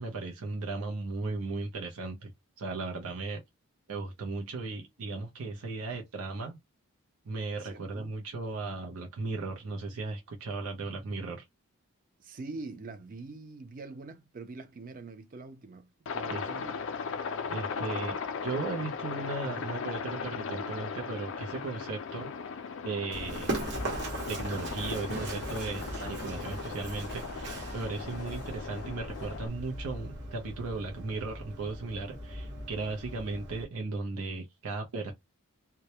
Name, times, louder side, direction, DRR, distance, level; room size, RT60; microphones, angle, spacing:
voice 1, 0.0-2.3 2.6-3.4 3.9-6.6 7.3-11.4 16.3-16.5 17.5-18.2 18.4-22.3 22.8-23.5 24.3-35.1, right 3 dB, 85° right, 0.6 m, -36 dB
voice 2, 7.6-8.1 12.2-16.7 28.0-28.2, right 3 dB, 40° right, 0.4 m, -44 dB
Aircraft, 16.1-29.5, left 5 dB, 60° left, 0.4 m, -38 dB
Run, 23.1-33.6, right 1 dB, 55° right, 1.0 m, -39 dB
2.2 x 2.0 x 2.8 m
head